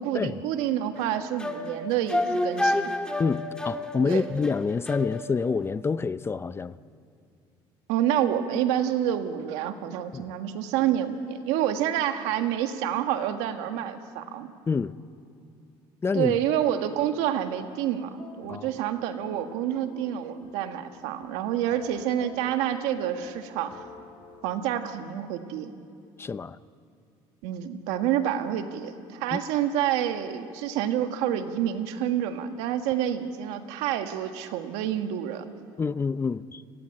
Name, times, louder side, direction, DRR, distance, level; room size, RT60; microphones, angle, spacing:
voice 1, 0.0-2.9 4.0-4.2 7.9-14.5 16.1-23.8 24.4-25.7 27.4-35.4, right 10 dB, 90° right, 1.7 m, -28 dB
sound 1, 0.9-5.5, left 1 dB, 10° left, 1.8 m, -29 dB
voice 2, 3.2-6.8 10.1-10.2 14.7-14.9 16.0-16.3 18.5-18.7 26.2-26.6 29.3-29.4 35.8-36.6, left 5 dB, 25° left, 0.6 m, -27 dB
sound 2, 18.0-24.6, left 4 dB, 60° left, 3.0 m, -48 dB
30.0 x 15.5 x 9.9 m
cardioid pair, 110°, 10 cm